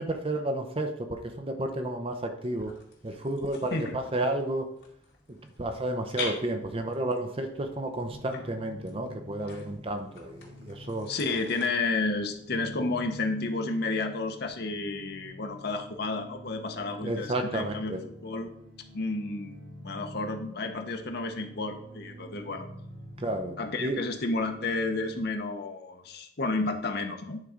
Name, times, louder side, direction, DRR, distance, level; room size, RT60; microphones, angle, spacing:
voice 1, 0.0-2.7 3.0-4.7 5.6-11.1 17.0-18.0 23.2-23.5 23.8-24.0, right 1 dB, 30° right, 6 dB, 0.6 m, -31 dB
sound 1, 2.4-11.7, left 4 dB, 75° left, 2.1 m, -45 dB
sound 2, 8.0-25.2, equal, 70° right, 3.6 m, -47 dB
voice 2, 11.1-18.5 18.9-22.7 23.6-27.4, left 3 dB, 55° left, 5 dB, 0.9 m, -31 dB
9.6 x 3.7 x 5.1 m, 0.71 s
head